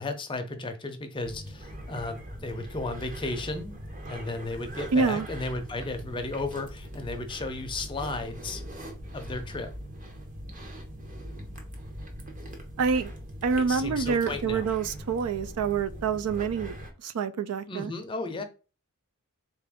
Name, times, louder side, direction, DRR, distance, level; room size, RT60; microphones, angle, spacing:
voice 1, 0.0-3.7 4.0-8.6 9.1-9.7 13.7-14.7 17.7-18.4, left 2 dB, 20° left, 0.5 m, -34 dB
sound 1, 1.2-16.9, equal, 35° right, 0.7 m, -41 dB
voice 2, 4.9-5.3 12.8-13.1 13.4-16.7 17.0-17.9, right 5 dB, 90° right, 0.4 m, -27 dB
3.7 x 2.5 x 3.4 m
head